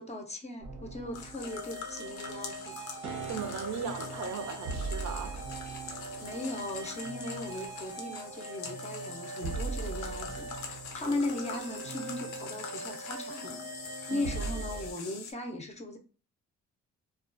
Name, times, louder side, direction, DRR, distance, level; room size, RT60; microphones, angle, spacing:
voice 1, 0.0-2.8 6.2-13.6 14.1-16.0, left 2 dB, 20° left, 0.5 m, -38 dB
sound 1, 0.6-14.9, right 3 dB, 85° right, 0.8 m, -40 dB
sound 2, 1.1-15.3, left 6 dB, 90° left, 0.5 m, -44 dB
voice 2, 3.3-5.4 14.1-14.3, right 6 dB, 65° right, 0.5 m, -37 dB
2.3 x 2.2 x 2.4 m
cardioid pair, 90°, 30 cm